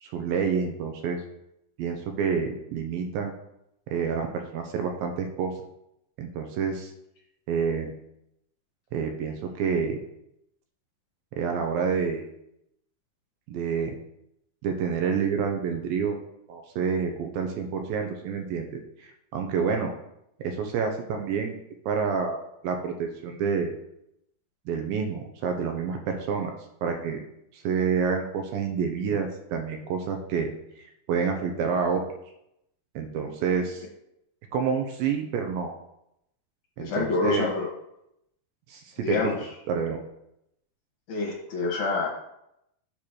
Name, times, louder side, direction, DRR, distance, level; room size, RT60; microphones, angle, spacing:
voice 1, 0.0-1.2 1.8-3.3 3.9-5.5 6.2-6.9 7.5-7.9 8.9-10.0 11.3-12.3 13.5-14.0 14.6-16.2 16.5-19.9 20.4-21.6 21.9-23.7 24.7-26.5 26.8-27.2 27.5-30.5 30.8-32.0 33.0-33.8 34.5-35.7 36.8-37.5 38.7-39.2 39.7-40.0, right 6 dB, 80° right, 4 dB, 2.4 m, -28 dB
voice 2, 36.8-37.7 39.0-39.4 41.1-42.1, left 4 dB, 65° left, -2 dB, 2.4 m, -27 dB
8.6 x 3.0 x 6.3 m, 0.80 s
omnidirectional pair, 4.5 m